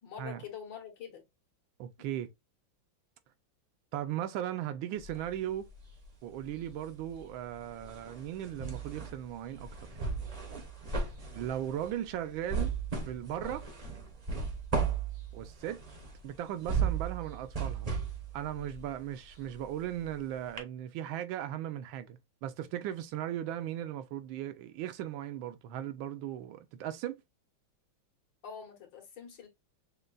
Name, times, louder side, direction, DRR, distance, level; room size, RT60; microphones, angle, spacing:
voice 1, 0.0-1.2 28.4-29.5, left 7 dB, 70° left, 1.9 m, -45 dB
voice 2, 1.8-2.3 3.9-5.7 6.2-9.7 11.3-12.7 13.1-13.7 15.3-15.8 16.2-17.9 18.3-27.2, right 11 dB, 85° right, 1.4 m, -37 dB
sound 1, 5.0-6.1 6.4-20.2 20.6-20.7, right 5 dB, 40° right, 0.5 m, -36 dB
6.5 x 2.2 x 2.3 m
omnidirectional pair, 2.1 m